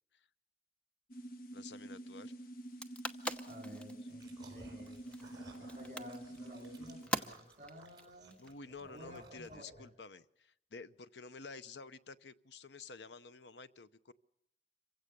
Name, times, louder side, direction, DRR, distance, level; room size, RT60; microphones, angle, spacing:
sound 1, 1.1-7.1, right 1 dB, 55° left, 0.9 m, -48 dB
voice 1, 1.5-2.3 8.4-14.1, left 4 dB, 80° left, 14 dB, 0.8 m, -51 dB
sound 2, 2.6-9.0, equal, 5° left, 0.9 m, -43 dB
voice 2, 3.5-5.0 5.6-8.4 8.8-9.9, equal, 40° right, 5 dB, 4.2 m, -53 dB
sound 3, 4.1-9.8, right 3 dB, 25° right, 4.5 m, -58 dB
26.5 x 16.5 x 6.7 m, 0.77 s
head